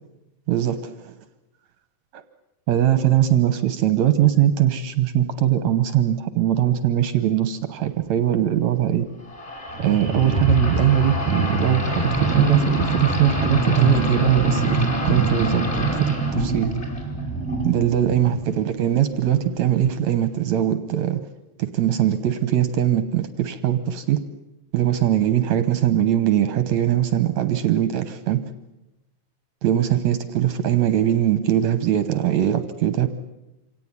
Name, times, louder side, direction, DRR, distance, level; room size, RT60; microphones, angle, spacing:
voice 1, 0.5-1.1 2.1-2.2 2.7-9.1 9.8-14.8 15.0-16.7 17.6-21.2 21.6-24.2 24.7-28.4 29.6-33.1, right 11 dB, 65° right, 12 dB, 2.0 m, -21 dB
sound 1, 9.3-18.6, right 2 dB, 15° left, 5.3 m, -23 dB
26.0 x 18.0 x 9.7 m, 0.96 s
omnidirectional pair, 4.0 m